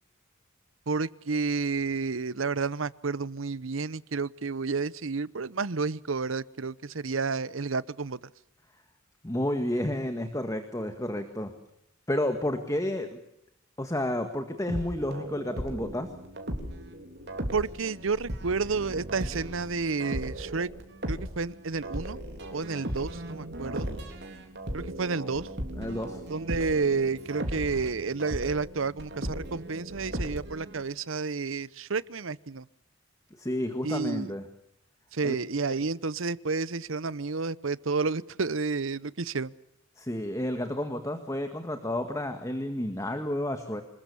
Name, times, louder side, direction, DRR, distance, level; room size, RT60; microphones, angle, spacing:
voice 1, 0.9-8.2 17.5-20.7 21.1-22.2 22.5-23.9 24.7-25.5 26.3-32.6 33.8-34.3 35.1-39.5, right 4 dB, 85° right, 19 dB, 0.9 m, -30 dB
voice 2, 9.2-11.5 12.1-13.2 13.8-16.1 25.8-26.2 33.4-34.5 35.2-35.4 40.0-43.8, left 1 dB, 15° left, 7 dB, 1.8 m, -31 dB
sound 1, 14.7-30.8, right 1 dB, 55° right, 4.0 m, -37 dB
27.0 x 21.0 x 7.1 m, 0.76 s
head